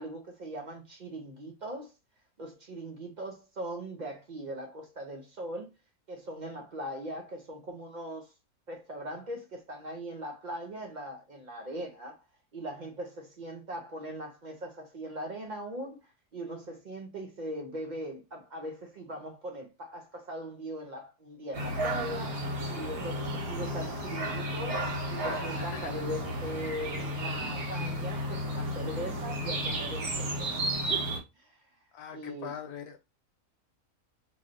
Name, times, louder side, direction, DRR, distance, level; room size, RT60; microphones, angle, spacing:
voice 1, 0.0-1.9 2.4-5.7 6.1-8.3 8.7-12.2 12.5-16.0 16.3-31.6 32.1-32.5, right 1 dB, 65° right, 0.4 m, -40 dB
sound 1, 21.5-31.2, right 1 dB, 85° right, 1.4 m, -33 dB
voice 2, 25.6-25.9 31.9-33.0, left 7 dB, 85° left, 1.2 m, -42 dB
3.1 x 2.7 x 2.4 m
omnidirectional pair, 1.6 m